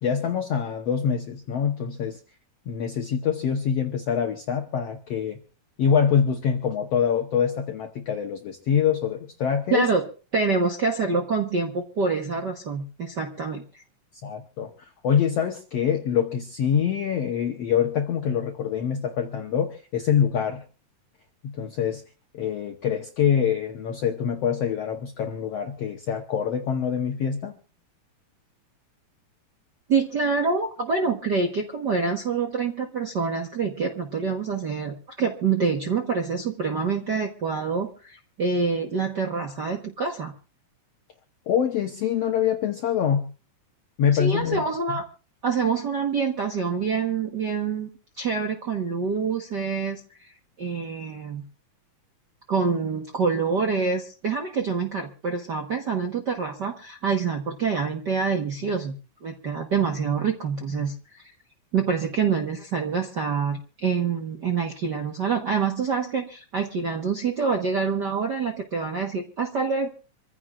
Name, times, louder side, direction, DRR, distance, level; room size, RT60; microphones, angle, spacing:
voice 1, 0.0-2.2 2.7-5.4 5.8-9.8 14.2-14.7 15.0-20.6 21.4-22.0 22.3-27.5 41.5-43.3 44.0-44.6, left 8 dB, 65° left, 4 dB, 1.7 m, -25 dB
voice 2, 9.7-10.0 10.3-13.8 29.9-40.3 44.1-45.0 45.4-47.9 48.2-50.3 50.6-51.4 52.5-58.9 59.2-61.2 61.7-69.9, right 5 dB, 60° right, 3 dB, 1.1 m, -26 dB
26.0 x 15.5 x 2.5 m, 0.36 s
omnidirectional pair, 3.9 m